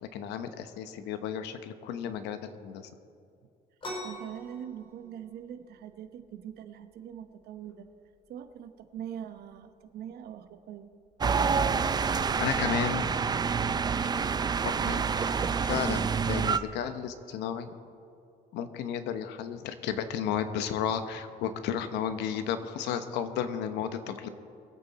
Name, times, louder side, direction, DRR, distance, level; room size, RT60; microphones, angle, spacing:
voice 1, 0.0-2.9 12.0-13.0 14.6-17.7 18.5-24.3, left 8 dB, 85° left, 10 dB, 1.0 m, -33 dB
sound 1, 3.8-11.2, equal, 30° left, 3.7 m, -47 dB
voice 2, 3.9-7.9 8.3-10.9, right 9 dB, 70° right, 9 dB, 1.0 m, -43 dB
sound 2, 11.2-16.6, right 5 dB, 25° right, 0.4 m, -27 dB
22.5 x 8.4 x 4.2 m, 2.5 s
cardioid pair, 110°, 17 cm